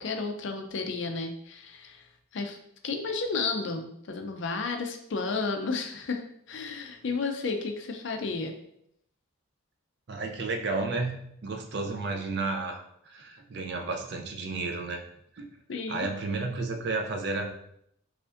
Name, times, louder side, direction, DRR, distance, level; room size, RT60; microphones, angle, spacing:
voice 1, 0.0-2.1 2.3-2.6 2.8-6.2 6.5-8.5 15.7-16.1, left 4 dB, 60° left, 4 dB, 0.5 m, -32 dB
voice 2, 10.1-11.2 11.4-15.0 15.3-15.5 15.9-17.5, right 3 dB, 50° right, 4 dB, 0.5 m, -32 dB
4.9 x 2.5 x 2.5 m, 0.72 s
head